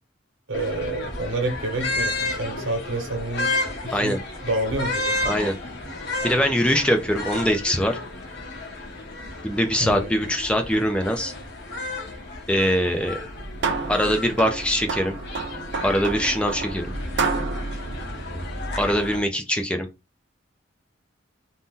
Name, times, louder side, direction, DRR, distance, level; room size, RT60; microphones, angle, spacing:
sound 1, 0.5-19.2, left 2 dB, 60° left, 0.9 m, -32 dB
voice 1, 0.5-3.5 3.8-5.3 9.8-10.1, right 2 dB, 85° right, 1.1 m, -28 dB
voice 2, 6.2-8.0 9.4-11.3 12.5-13.2 13.9-15.1 15.8-16.8 18.8-19.9, equal, 5° left, 0.3 m, -22 dB
sound 2, 13.2-19.0, right 4 dB, 60° right, 0.4 m, -31 dB
2.7 x 2.1 x 3.5 m
head